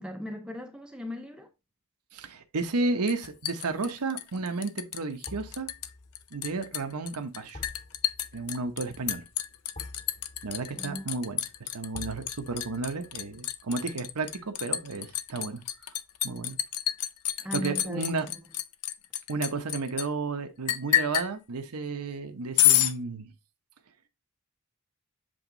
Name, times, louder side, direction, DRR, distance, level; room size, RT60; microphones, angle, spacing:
voice 1, 0.0-1.5 10.7-11.1 17.4-18.4, equal, 5° right, 0.5 m, -38 dB
voice 2, 2.1-5.7 6.3-7.6 8.3-9.2 10.4-11.4 11.7-15.6 16.2-16.6 17.5-18.3 19.3-23.3, right 3 dB, 80° right, 0.9 m, -32 dB
Liquid, 3.1-5.0 5.2-5.9 6.1-20.1 20.7-21.3 22.6-22.9, left 12 dB, 80° left, 0.6 m, -29 dB
sound 1, 5.3-16.3 16.6-16.7, left 2 dB, 40° left, 1.3 m, -50 dB
7.8 x 3.5 x 3.8 m
head